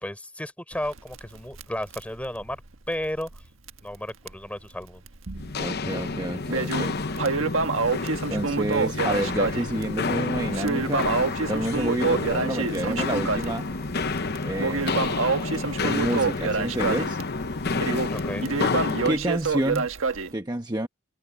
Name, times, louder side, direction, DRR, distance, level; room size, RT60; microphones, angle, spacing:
voice 1, 0.0-2.6 2.9-3.4 3.8-5.0 18.1-18.5, left 1 dB, 5° left, 4.8 m, -33 dB
Crackle, 0.7-3.4 3.7-3.8 4.3-4.4 5.1-5.7 6.0-20.3, right 4 dB, 85° right, 1.5 m, -28 dB
Walk footsteps, 5.4-19.2, left 3 dB, 50° left, 0.9 m, -29 dB
voice 2, 5.6-7.0 8.3-11.1 11.5-13.7 14.4-15.3 15.8-17.2 19.0-19.9 20.3-20.9, right 1 dB, 20° right, 1.0 m, -29 dB
head